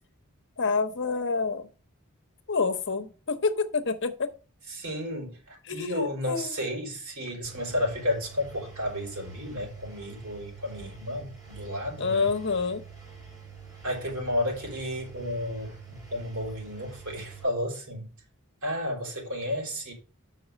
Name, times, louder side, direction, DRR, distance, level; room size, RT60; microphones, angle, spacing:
voice 1, 0.6-1.7 2.5-4.3 5.7-6.0 6.3-6.6 12.0-12.8, left 4 dB, 55° left, 0.9 m, -27 dB
voice 2, 4.7-12.3 13.8-18.1 18.6-19.9, left 1 dB, 70° right, 4.3 m, -32 dB
Engine, 7.4-17.4, right 6 dB, 15° right, 4.0 m, -47 dB
7.5 x 5.8 x 5.2 m
head